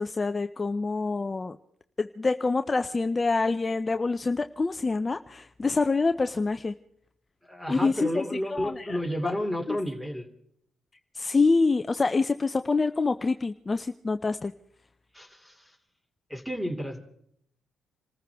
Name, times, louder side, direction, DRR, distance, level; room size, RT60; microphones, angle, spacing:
voice 1, 0.0-1.6 2.0-6.7 7.7-8.2 8.5-9.3 9.7-9.8 11.1-14.5, left 3 dB, 25° left, 9 dB, 0.6 m, -26 dB
voice 2, 7.5-10.3 15.1-15.7 16.3-17.0, equal, 5° right, 4 dB, 2.8 m, -31 dB
27.5 x 14.5 x 3.5 m, 0.70 s
cardioid pair, 90°, 0 cm